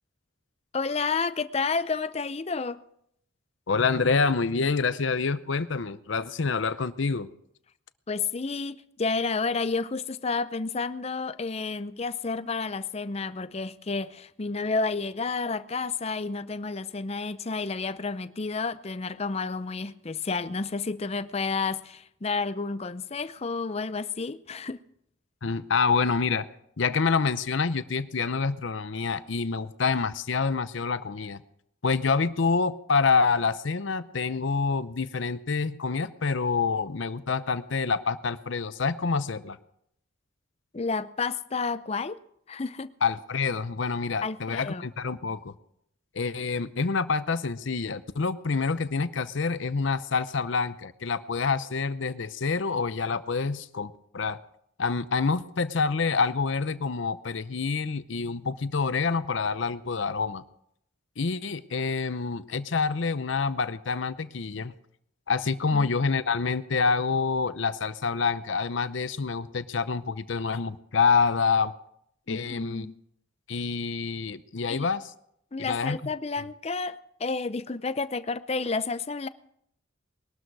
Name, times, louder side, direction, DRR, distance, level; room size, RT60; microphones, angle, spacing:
voice 1, 0.7-2.8 8.1-24.8 40.7-42.2 42.5-42.9 44.2-44.9 65.7-65.9 72.3-73.0 74.7-74.9 75.5-79.3, left 4 dB, 30° left, 0.6 m, -30 dB
voice 2, 3.7-7.3 25.4-26.5 26.8-31.4 31.8-39.6 43.0-45.5 46.1-54.4 54.8-60.4 61.2-64.7 65.3-71.7 72.3-72.9 73.5-75.1 75.6-76.0, left 4 dB, 70° left, 0.7 m, -27 dB
21.0 x 12.5 x 4.7 m
head